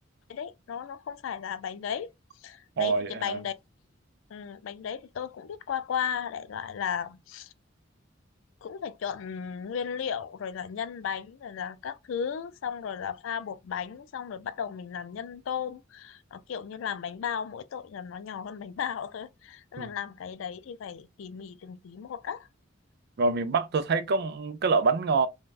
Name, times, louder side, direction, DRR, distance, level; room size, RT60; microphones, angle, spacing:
voice 1, 0.3-2.1 2.4-3.5 4.3-7.5 8.6-22.5, left 7 dB, 75° left, 0.3 m, -35 dB
voice 2, 2.8-3.4 19.8-19.9 23.2-25.3, right 4 dB, 55° right, 0.4 m, -26 dB
3.2 x 2.2 x 2.4 m
head